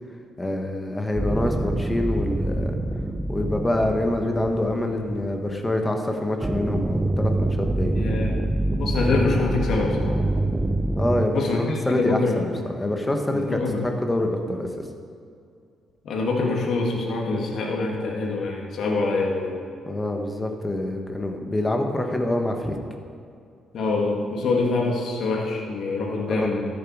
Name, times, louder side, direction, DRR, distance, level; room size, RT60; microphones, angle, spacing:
voice 1, 0.4-2.7 3.3-8.0 11.0-14.7 19.9-22.8 26.3-26.5, left 1 dB, 15° left, 3 dB, 1.2 m, -26 dB
sound 1, 1.1-5.4 6.4-11.2, right 2 dB, 15° right, 0.6 m, -25 dB
voice 2, 7.9-8.3 8.8-10.2 11.3-12.4 13.3-13.9 16.0-19.5 23.7-26.7, left 3 dB, 65° left, -1 dB, 2.0 m, -25 dB
13.0 x 7.2 x 4.7 m, 2.3 s
cardioid pair, 90°, 0 cm